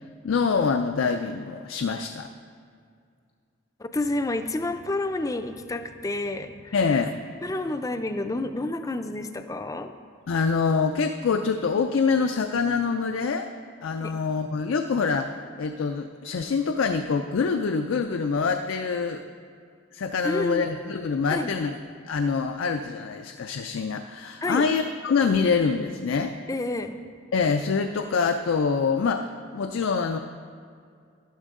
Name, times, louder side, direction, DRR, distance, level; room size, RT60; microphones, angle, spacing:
voice 1, 0.2-2.3 6.7-7.2 10.3-13.5 13.8-15.3 15.6-19.2 19.9-21.8 22.1-26.3 27.3-30.2, left 5 dB, 75° left, 6 dB, 0.4 m, -25 dB
voice 2, 3.8-6.7 7.4-9.9 14.0-14.1 20.2-20.7 21.3-21.5 24.4-24.7 26.5-27.0, left 2 dB, 15° left, 8 dB, 0.4 m, -29 dB
12.0 x 11.0 x 3.7 m, 2.2 s
head